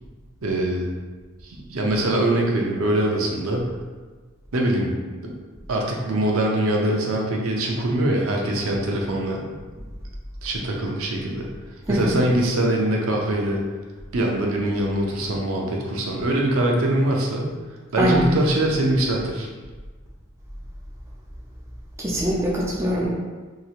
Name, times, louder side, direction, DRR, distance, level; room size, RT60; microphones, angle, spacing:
voice 1, 0.4-0.9 1.4-3.7 4.5-4.9 5.2-5.3 5.7-9.6 10.4-11.5 11.9-13.6 14.1-17.5 17.9-19.5, right 1 dB, 90° right, -1 dB, 0.5 m, -23 dB
voice 2, 11.9-12.2 18.0-18.3 22.0-23.1, equal, 15° right, -4 dB, 0.4 m, -22 dB
2.9 x 2.8 x 2.4 m, 1.3 s
head